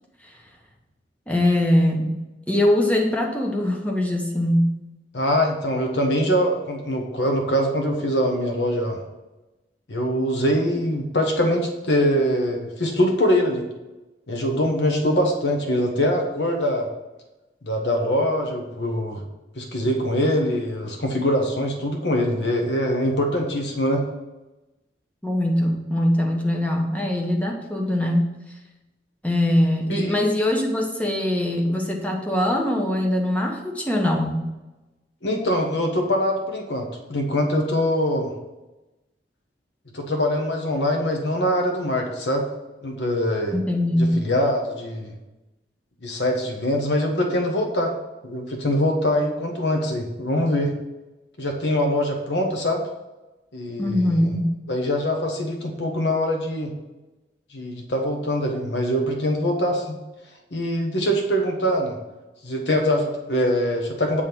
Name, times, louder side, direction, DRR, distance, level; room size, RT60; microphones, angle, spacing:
voice 1, 1.3-2.1 2.5-4.7 25.2-28.3 29.2-34.4 43.5-44.2 53.8-54.5, left 1 dB, 10° left, 0 dB, 1.1 m, -22 dB
voice 2, 5.1-9.0 9.9-13.6 14.3-16.9 17.6-19.2 19.6-24.0 29.9-30.1 35.2-38.3 39.9-42.4 42.8-43.5 44.0-45.1 46.0-47.9 48.2-50.7 51.4-52.8 53.5-54.2 54.7-56.7 57.5-60.0 60.5-62.0 62.4-64.2, equal, 80° left, 2 dB, 1.2 m, -23 dB
8.3 x 3.7 x 6.1 m, 1.0 s
head